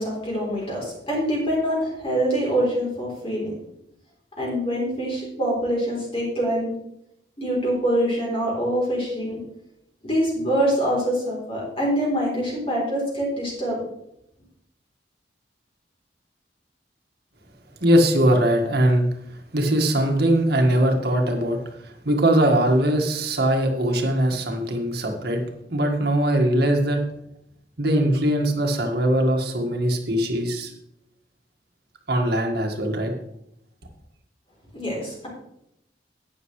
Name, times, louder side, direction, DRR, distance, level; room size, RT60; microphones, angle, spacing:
voice 1, 0.0-3.5 4.4-6.7 7.4-9.4 10.0-13.8 34.7-35.3, equal, 30° left, -4 dB, 3.6 m, -25 dB
voice 2, 17.8-19.1 19.5-25.4 25.7-27.0 27.8-30.7 32.1-33.1, right 1 dB, 65° right, 3 dB, 1.8 m, -21 dB
11.5 x 9.2 x 3.2 m, 0.78 s
head